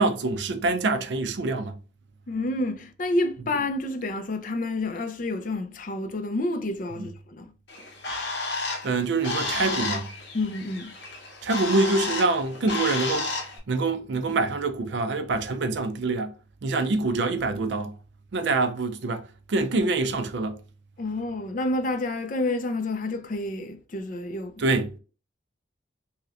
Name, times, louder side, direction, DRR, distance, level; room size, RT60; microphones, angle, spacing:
voice 1, 0.0-1.8 7.0-7.1 8.8-10.1 11.4-13.3 13.7-16.3 16.6-17.9 18.3-20.6 24.6-25.0, right 3 dB, 65° right, 0.4 m, -25 dB
voice 2, 2.3-7.5 10.3-10.9 21.0-24.5, left 2 dB, 45° left, 0.4 m, -29 dB
Bird, 7.7-13.6, left 3 dB, 65° left, 0.9 m, -32 dB
3.1 x 2.8 x 2.4 m
head